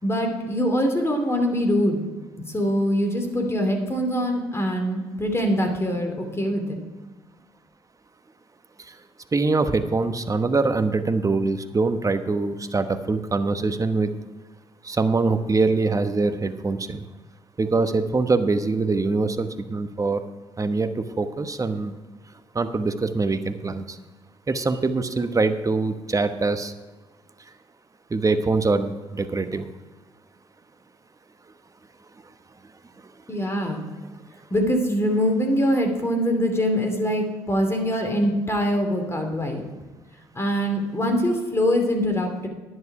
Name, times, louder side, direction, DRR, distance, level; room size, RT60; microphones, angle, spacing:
voice 1, 0.0-2.0 2.5-6.8 33.3-33.8 34.5-39.7 40.3-42.5, equal, 20° left, 3 dB, 2.7 m, -23 dB
voice 2, 9.3-14.1 14.8-17.0 17.6-20.2 20.6-20.9 21.2-22.0 22.5-24.0 24.5-26.7 28.1-29.6, right 3 dB, 25° right, 9 dB, 1.1 m, -23 dB
11.0 x 9.6 x 4.9 m, 1.3 s
hypercardioid pair, 50°, 12 cm